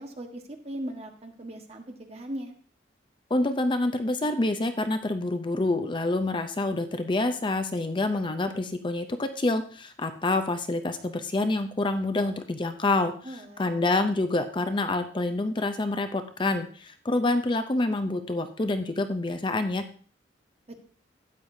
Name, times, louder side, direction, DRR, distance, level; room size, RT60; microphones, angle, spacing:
voice 1, 0.0-2.5 13.2-13.7 20.7-20.9, right 1 dB, 35° right, 3 dB, 1.3 m, -39 dB
voice 2, 3.3-19.8, left 2 dB, 25° left, 9 dB, 0.5 m, -27 dB
12.5 x 9.0 x 2.7 m, 0.44 s
head